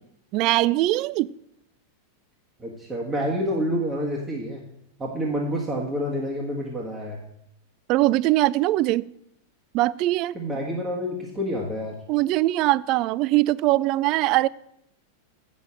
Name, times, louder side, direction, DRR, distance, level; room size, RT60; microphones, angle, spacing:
voice 1, 0.3-1.3 7.9-9.1 9.7-10.3 12.1-14.5, right 17 dB, 40° right, 0.3 m, -21 dB
voice 2, 2.6-4.6 5.0-7.2 10.3-12.0, equal, 20° right, 1.6 m, -28 dB
8.2 x 6.5 x 7.4 m
figure-of-eight pair, 90°, 0 cm